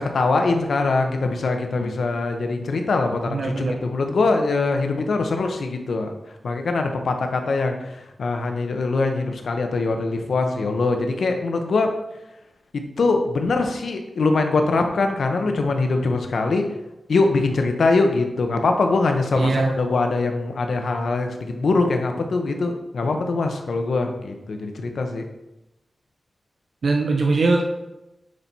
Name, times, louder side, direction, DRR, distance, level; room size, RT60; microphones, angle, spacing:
voice 1, 0.0-6.1 6.4-11.9 13.0-16.6 17.1-25.2, left 3 dB, 75° left, 4 dB, 0.9 m, -22 dB
voice 2, 3.3-3.8 19.3-19.8 26.8-27.6, right 3 dB, 70° right, 1 dB, 0.8 m, -21 dB
9.6 x 4.5 x 4.2 m, 0.95 s
wide cardioid pair, 155°, 0 cm